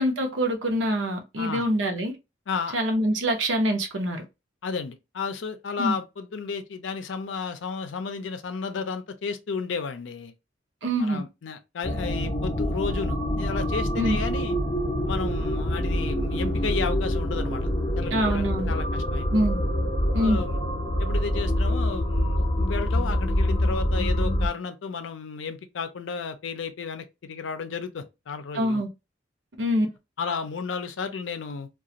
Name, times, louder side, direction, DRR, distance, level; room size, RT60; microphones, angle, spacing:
voice 1, 0.0-2.1 2.7-4.2 5.8-6.0 10.8-11.2 14.0-14.2 18.1-18.7 19.3-19.6 20.1-20.4 28.5-28.9 29.6-29.9, equal, 90° right, 0.7 m, -24 dB
voice 2, 2.5-2.8 4.6-10.3 11.0-14.6 15.1-17.7 18.0-19.3 20.2-20.6 21.0-28.8 30.2-31.7, left 5 dB, 85° left, 0.5 m, -33 dB
sound 1, 11.8-24.5, equal, 35° left, 0.5 m, -26 dB
2.4 x 2.3 x 2.8 m
head